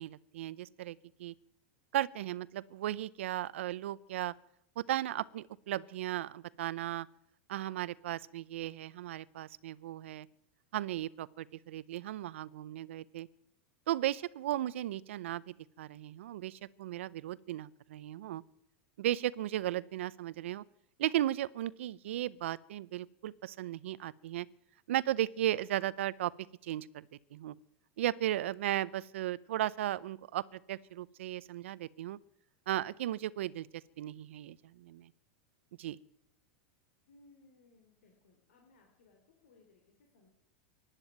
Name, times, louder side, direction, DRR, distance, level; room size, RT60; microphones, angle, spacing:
voice 1, 0.0-1.3 1.9-4.3 4.8-7.1 7.5-10.3 10.7-13.3 13.9-18.4 19.0-20.6 21.0-24.5 24.9-26.3 26.6-27.1 27.3-27.5 28.0-32.2 32.7-33.7 34.0-35.1 35.8-36.0, right 13 dB, 80° right, 21 dB, 0.6 m, -36 dB
voice 2, 37.0-40.3, left 3 dB, 85° left, 2 dB, 3.5 m, -64 dB
16.0 x 9.9 x 9.0 m, 0.78 s
supercardioid pair, 125°, 7 cm